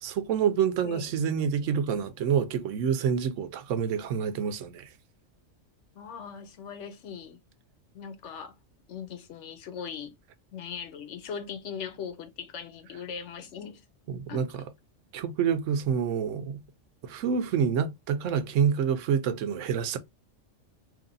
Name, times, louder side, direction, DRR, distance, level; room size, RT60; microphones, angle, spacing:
voice 1, 0.0-4.9 14.1-14.6 15.1-16.6 17.0-20.0, right 7 dB, 90° right, 0.9 m, -27 dB
voice 2, 0.8-1.1 5.9-7.4 7.9-8.5 8.9-10.1 10.5-13.8 14.3-14.4, left 7 dB, 70° left, 1.0 m, -39 dB
3.0 x 2.7 x 3.8 m
omnidirectional pair, 1.2 m